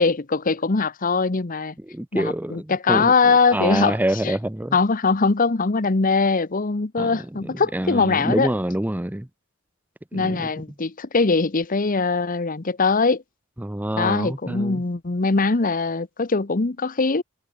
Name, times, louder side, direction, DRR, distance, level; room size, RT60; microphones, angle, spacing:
voice 1, 0.0-1.7 2.1-4.4 4.7-8.5 10.1-13.2 14.0-17.2, left 4 dB, 40° left, 0.9 m, -21 dB
voice 2, 1.9-3.1 3.5-4.8 7.0-7.1 7.7-9.3 10.1-10.4 13.6-14.8, right 1 dB, 10° right, 0.7 m, -26 dB
head